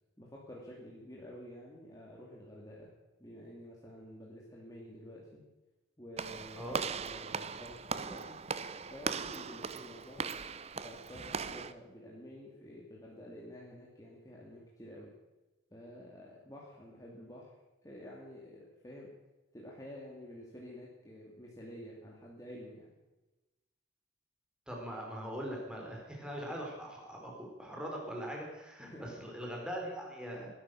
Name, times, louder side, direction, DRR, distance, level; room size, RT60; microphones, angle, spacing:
voice 1, 0.2-2.9 3.2-5.4 6.0-8.4 8.9-10.3 10.8-15.1 15.7-17.5 17.8-19.1 19.5-22.9 28.8-29.1, equal, 15° left, -4 dB, 2.6 m, -50 dB
Walk footsteps / Slam, 6.2-11.7, right 5 dB, 30° right, 0.6 m, -39 dB
voice 2, 24.7-30.5, equal, 5° right, -1 dB, 4.0 m, -41 dB
20.0 x 11.5 x 6.3 m, 1.1 s
head